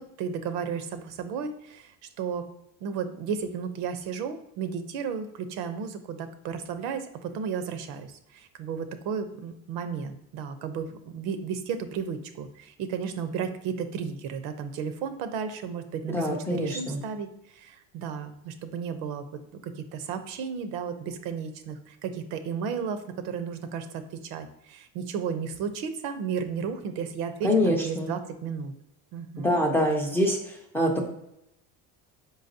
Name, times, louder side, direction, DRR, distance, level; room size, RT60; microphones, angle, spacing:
voice 1, 0.0-1.9 2.2-2.5 2.8-17.3 17.5-28.7 29.1-29.6, right 6 dB, 80° right, 9 dB, 0.7 m, -33 dB
voice 2, 16.1-17.0 27.4-28.1 29.4-31.1, equal, 5° left, 1 dB, 0.3 m, -25 dB
5.0 x 3.9 x 2.7 m, 0.83 s
cardioid pair, 165°, 37 cm